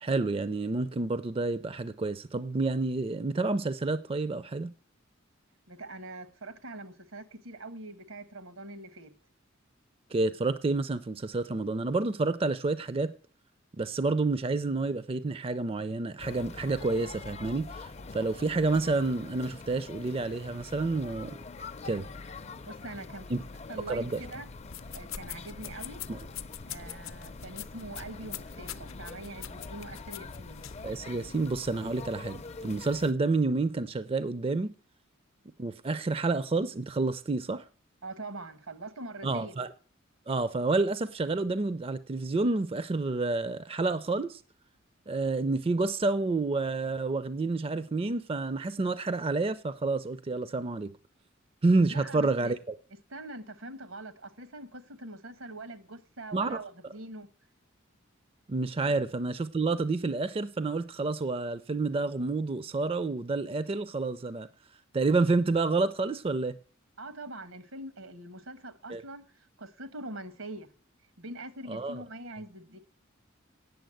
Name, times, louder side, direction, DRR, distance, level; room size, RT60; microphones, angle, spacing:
voice 1, 0.0-4.7 10.1-13.1 13.8-21.4 21.8-22.1 23.3-23.4 23.9-24.2 26.1-26.2 30.8-34.7 35.6-37.6 39.2-39.7 40.3-44.4 45.1-50.9 51.6-52.6 56.3-56.6 58.5-64.5 64.9-66.5 68.9-69.0 71.7-72.0, right 3 dB, 30° right, 0.4 m, -29 dB
voice 2, 5.7-9.1 22.6-23.4 23.7-24.5 24.9-26.0 26.7-30.7 38.0-39.6 51.9-52.5 53.1-57.3 58.8-58.9 67.0-70.7 71.2-72.8, right 2 dB, 80° right, 1.3 m, -43 dB
sound 1, 16.2-33.1, left 3 dB, 30° left, 0.5 m, -44 dB
sound 2, 24.6-30.9, left 10 dB, 80° left, 0.6 m, -44 dB
9.2 x 7.0 x 7.7 m
head